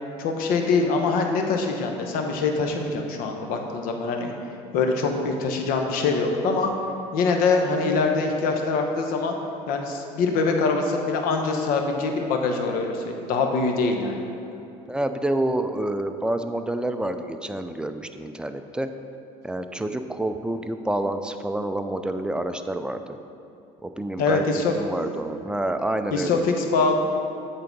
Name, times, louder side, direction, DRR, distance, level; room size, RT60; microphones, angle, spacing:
voice 1, 0.2-4.3 4.7-6.7 7.1-9.3 9.7-14.2 24.2-24.7 26.1-26.9, left 4 dB, 70° left, 3 dB, 0.9 m, -24 dB
voice 2, 14.9-18.9 19.4-23.2 23.8-24.4 24.7-26.4, right 1 dB, 5° right, 8 dB, 0.4 m, -28 dB
8.2 x 3.8 x 5.2 m, 2.7 s
supercardioid pair, 90°, 15 cm